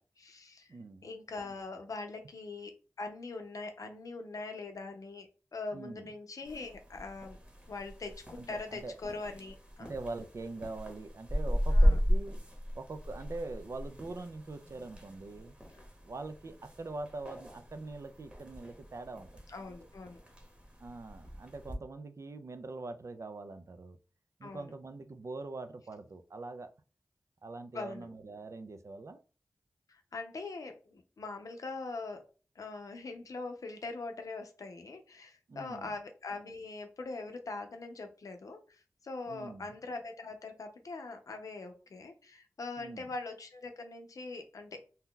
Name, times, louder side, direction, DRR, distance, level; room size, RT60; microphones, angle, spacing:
voice 1, 0.2-0.8 1.0-7.4 7.7-9.9 11.7-12.0 15.7-15.8 19.5-20.2 24.4-24.7 27.7-28.1 29.9-32.2 32.6-38.6 39.0-44.8, left 3 dB, 80° left, 6 dB, 0.5 m, -42 dB
voice 2, 0.7-1.1 5.7-6.1 8.4-9.0 9.8-12.4 12.7-15.6 16.1-19.3 20.8-24.0 24.4-26.7 27.4-29.2 35.5-36.0 39.3-39.8 42.8-43.1, right 3 dB, 60° right, 9 dB, 0.4 m, -43 dB
sound 1, 6.4-21.8, equal, 20° right, 1.0 m, -35 dB
2.7 x 2.2 x 3.6 m, 0.36 s
cardioid pair, 45°, 6 cm